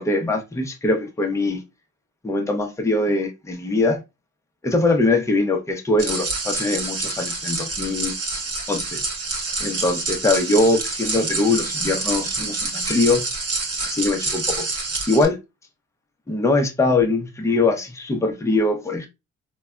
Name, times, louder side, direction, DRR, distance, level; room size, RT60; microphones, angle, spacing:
voice 1, 0.0-1.6 2.2-4.0 4.6-8.1 8.7-9.0 9.6-13.3 13.8-14.7 15.1-15.4 16.3-19.1, left 2 dB, 10° left, 0.6 m, -22 dB
sound 1, 6.0-15.2, right 3 dB, 50° right, 1.0 m, -27 dB
3.3 x 2.2 x 2.2 m
cardioid pair, 90°, 30 cm